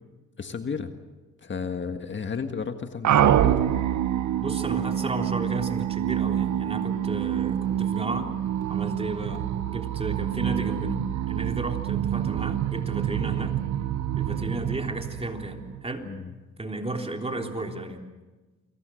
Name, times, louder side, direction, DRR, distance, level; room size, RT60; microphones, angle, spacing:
voice 1, 0.4-0.9 1.4-3.6 16.0-16.3, left 5 dB, 40° left, 7 dB, 1.8 m, -32 dB
sound 1, 3.0-15.9, right 11 dB, 70° right, 1.3 m, -26 dB
voice 2, 4.4-8.3 8.7-13.6 14.2-16.1 16.6-18.0, right 2 dB, 20° right, 3 dB, 3.5 m, -33 dB
29.5 x 23.0 x 6.5 m, 1.2 s
cardioid pair, 90°, 30 cm